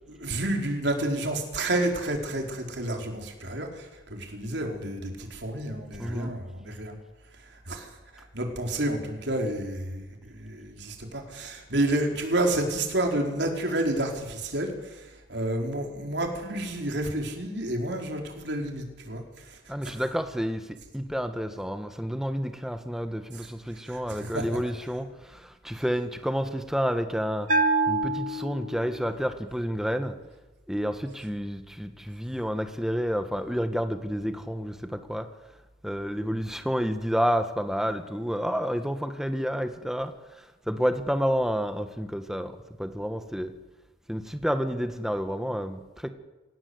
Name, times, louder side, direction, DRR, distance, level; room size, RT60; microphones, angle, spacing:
voice 1, 0.1-6.9 7.7-7.9 8.1-19.9 23.9-24.4, right 1 dB, 65° right, 2 dB, 4.5 m, -30 dB
voice 2, 6.0-6.3 19.7-27.5 27.9-30.2 30.7-35.3 35.8-43.5 44.1-46.1, equal, ahead, 8 dB, 1.6 m, -30 dB
Bell, 27.5-29.1, right 3 dB, 45° right, 2.1 m, -26 dB
26.5 x 17.5 x 8.1 m, 1.1 s
head